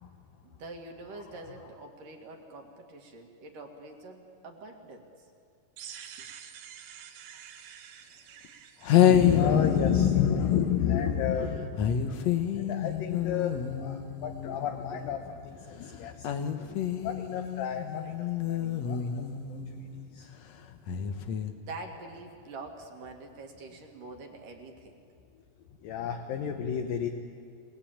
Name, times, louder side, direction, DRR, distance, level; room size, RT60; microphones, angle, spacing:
voice 1, 0.4-5.3 21.5-25.0, right 2 dB, 55° right, 2 dB, 3.3 m, -45 dB
sound 1, 5.8-10.6, right 8 dB, 85° right, 3.6 m, -48 dB
sound 2, 8.4-8.5 8.8-11.0 11.8-15.2 16.2-20.1 20.9-21.5, left 9 dB, 90° left, 1.5 m, -28 dB
voice 2, 9.1-16.3 17.0-18.2 18.5-19.2 20.1-20.3 25.8-27.1, left 8 dB, 65° left, 4 dB, 2.5 m, -30 dB
29.0 x 19.0 x 8.7 m, 2.3 s
omnidirectional pair, 4.9 m